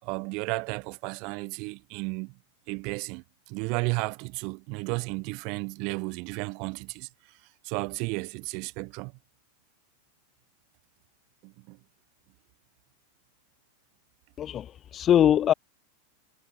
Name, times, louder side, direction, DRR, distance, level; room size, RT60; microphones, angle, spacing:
voice 1, 0.0-2.3 2.7-7.1 7.6-9.1 11.4-11.8, right 31 dB, 45° right, 7.6 m, -33 dB
voice 2, 14.4-15.5, left 10 dB, 25° left, 3.2 m, -22 dB
figure-of-eight pair, 90°, 0 cm